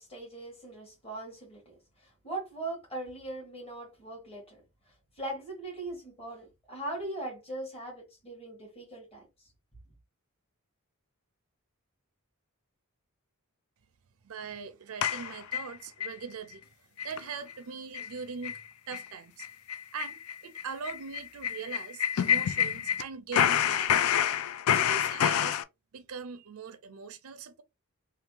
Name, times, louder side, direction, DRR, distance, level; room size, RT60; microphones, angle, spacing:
voice 1, 0.0-4.6 5.2-9.3, right 2 dB, 30° left, 1.7 m, -40 dB
voice 2, 14.2-16.7 17.0-18.6 18.9-19.5 19.9-24.1 24.7-25.6 25.9-27.6, right 6 dB, 75° right, 0.4 m, -41 dB
sound 1, 15.0-16.1 16.5-16.6 17.0-17.2 17.5-17.6 17.9-18.1 18.4-18.6 18.9-19.0 19.4-23.0 23.3-25.6, left 9 dB, 75° left, 0.3 m, -28 dB
3.3 x 2.3 x 3.1 m
head